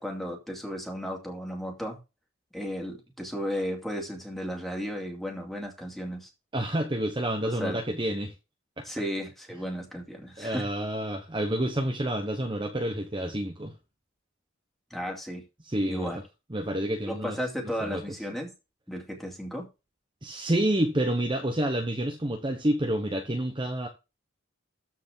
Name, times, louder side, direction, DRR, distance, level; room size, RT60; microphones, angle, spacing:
voice 1, 0.0-2.0 2.5-6.3 7.4-7.8 8.8-10.7 14.9-15.4 15.9-16.2 17.1-18.5 18.9-19.7, equal, ahead, 2.4 m, -34 dB
voice 2, 6.5-8.3 8.8-8.9 10.4-13.7 15.6-16.1 16.5-17.4 17.8-18.0 20.2-23.9, right 1 dB, 25° right, 1.0 m, -28 dB
13.5 x 4.7 x 3.7 m
head